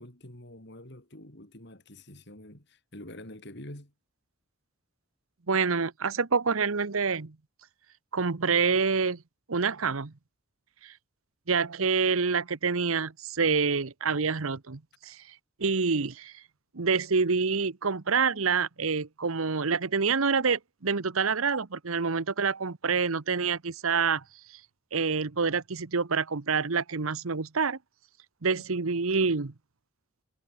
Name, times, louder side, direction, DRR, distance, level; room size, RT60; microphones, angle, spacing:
voice 1, 0.0-3.9 28.5-28.6, left 1 dB, 55° left, 4.9 m, -46 dB
voice 2, 5.5-7.4 8.1-9.2 9.5-10.1 10.8-10.9 11.5-15.2 15.6-16.3 16.7-24.2 24.9-27.8 28.4-29.5, right 5 dB, 75° right, 1.0 m, -27 dB
head